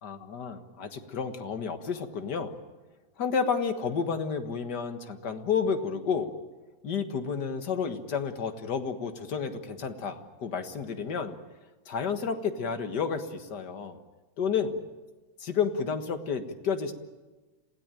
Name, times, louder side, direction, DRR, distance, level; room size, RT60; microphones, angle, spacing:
voice 1, 0.0-2.6 3.2-6.3 6.8-11.4 11.9-14.0 14.4-14.8 15.4-16.9, left 6 dB, 60° left, 7 dB, 2.1 m, -31 dB
27.5 x 17.0 x 9.1 m, 1.2 s
omnidirectional pair, 2.2 m